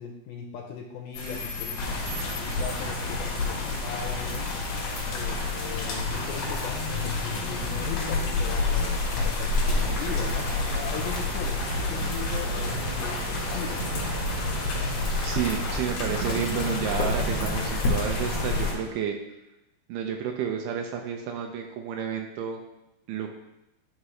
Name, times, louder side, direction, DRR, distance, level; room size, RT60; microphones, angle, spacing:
voice 1, 0.0-1.9 2.4-4.6 5.1-13.8, left 7 dB, 85° left, 1 dB, 2.4 m, -39 dB
sound 1, 1.1-18.9, left 2 dB, 45° left, 1.5 m, -43 dB
sound 2, 1.8-18.7, left 3 dB, 65° left, 1.6 m, -29 dB
sound 3, 9.7-18.4, right 2 dB, 60° right, 1.9 m, -34 dB
voice 2, 15.2-19.1 19.9-22.6 23.1-23.3, right 8 dB, 90° right, 3 dB, 1.9 m, -31 dB
9.9 x 5.3 x 3.1 m, 0.90 s
omnidirectional pair, 4.5 m